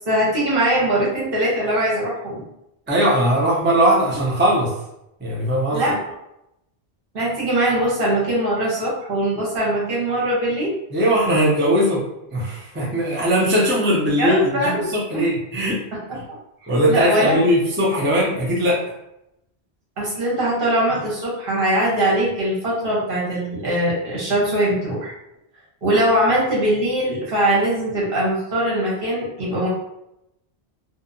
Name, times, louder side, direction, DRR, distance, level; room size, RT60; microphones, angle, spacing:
voice 1, 0.0-2.4 5.7-6.0 7.1-10.8 14.2-14.8 15.1-15.3 16.9-17.4 20.0-25.1 25.8-29.7, right 1 dB, 60° right, -5 dB, 1.1 m, -21 dB
voice 2, 2.9-4.7 5.2-5.9 10.9-12.0 12.3-15.8 16.7-18.8, equal, 15° right, -5 dB, 0.4 m, -19 dB
2.6 x 2.2 x 2.6 m, 0.84 s
omnidirectional pair, 1.1 m